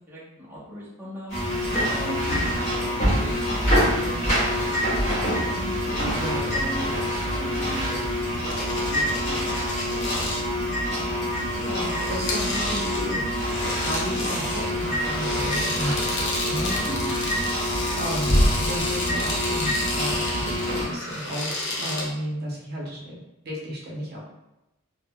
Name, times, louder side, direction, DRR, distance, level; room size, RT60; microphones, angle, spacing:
voice 1, 0.1-1.3 1.9-5.7 6.2-9.5 16.9-17.0, equal, 10° right, -9 dB, 0.6 m, -39 dB
sound 1, 1.3-20.9, equal, 35° left, 1.1 m, -26 dB
sound 2, 8.5-10.4 11.2-22.1, left 2 dB, 60° left, 0.6 m, -32 dB
voice 2, 11.2-13.2 13.5-16.8 17.1-17.3 17.8-23.2 23.4-24.2, equal, 50° right, -4 dB, 0.7 m, -33 dB
3.4 x 2.1 x 2.2 m, 0.93 s
head